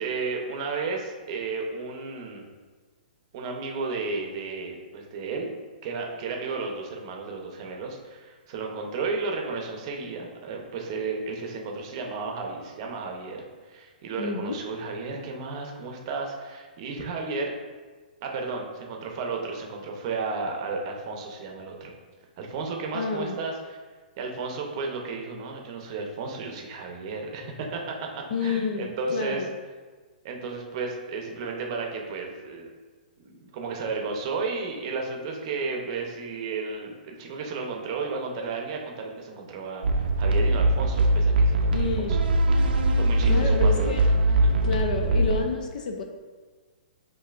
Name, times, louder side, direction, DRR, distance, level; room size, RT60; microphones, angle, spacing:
voice 1, 0.0-2.5 3.3-5.5 5.8-17.5 18.2-21.9 22.4-23.8 24.2-29.4 30.2-32.7 33.2-42.2 42.9-44.0 44.4-44.5, right 4 dB, 35° right, 1 dB, 0.7 m, -33 dB
voice 2, 14.2-14.6 22.9-23.3 28.3-29.5 41.7-42.2 43.3-44.1 44.5-46.0, left 4 dB, 55° left, 4 dB, 0.5 m, -29 dB
sound 1, 39.8-45.4, right 1 dB, 90° right, 0.6 m, -21 dB
7.9 x 2.7 x 2.4 m, 1.4 s
hypercardioid pair, 160°, 5 cm